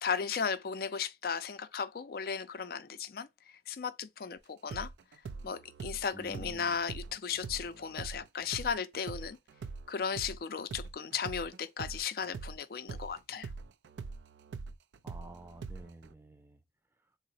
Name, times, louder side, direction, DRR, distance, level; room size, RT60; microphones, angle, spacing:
voice 1, 0.0-4.9 5.4-9.4 9.9-13.5, left 6 dB, 55° left, 0.4 m, -36 dB
sound 1, 4.7-12.6 12.9-16.1, right 4 dB, 90° right, 0.4 m, -43 dB
voice 2, 6.1-6.8 15.0-16.6, right 2 dB, 10° right, 0.4 m, -50 dB
3.8 x 2.0 x 2.7 m
head